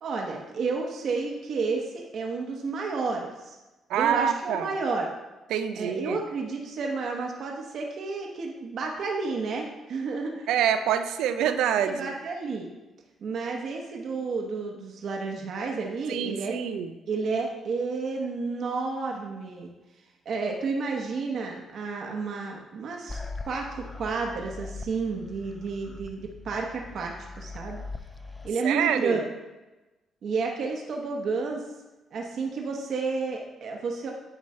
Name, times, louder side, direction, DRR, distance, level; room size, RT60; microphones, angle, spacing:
voice 1, 0.0-3.6 3.9-5.1 5.7-10.5 11.8-12.7 13.2-16.6 17.1-19.7 20.2-23.2 23.5-27.8 28.4-29.2 30.2-31.6 32.1-34.1, right 4 dB, 65° right, 0 dB, 1.0 m, -31 dB
voice 2, 3.9-4.7 5.5-6.2 10.5-11.9 16.1-16.9 28.6-29.2, right 9 dB, 85° right, 9 dB, 0.4 m, -26 dB
sound 1, 23.1-28.5, left 3 dB, 15° left, 0.3 m, -41 dB
9.3 x 3.2 x 4.2 m, 1.1 s
cardioid pair, 90°, 0 cm